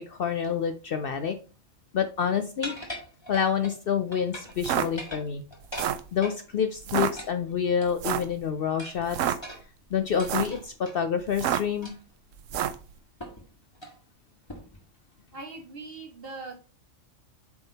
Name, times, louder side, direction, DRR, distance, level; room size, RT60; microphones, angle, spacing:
voice 1, 0.0-1.4 1.9-2.8 3.3-5.4 6.1-9.4 9.9-11.9, left 7 dB, 60° left, 8 dB, 0.7 m, -28 dB
sound 1, 2.6-3.8 4.1-4.6 4.9-6.4 7.2-8.2 8.8-11.0 11.8-12.1 12.5-12.6 13.2-13.5 13.7-14.0 14.5-14.8, equal, 20° left, 1.5 m, -41 dB
sound 2, 4.5-4.9 5.6-6.1 6.8-7.1 8.0-8.3 9.0-9.4 10.1-10.6 11.3-11.8 12.5-12.8, right 10 dB, 80° right, 1.0 m, -28 dB
voice 2, 15.3-16.6, right 3 dB, 50° right, 3 dB, 1.6 m, -40 dB
7.9 x 3.6 x 4.0 m, 0.36 s
omnidirectional pair, 1.3 m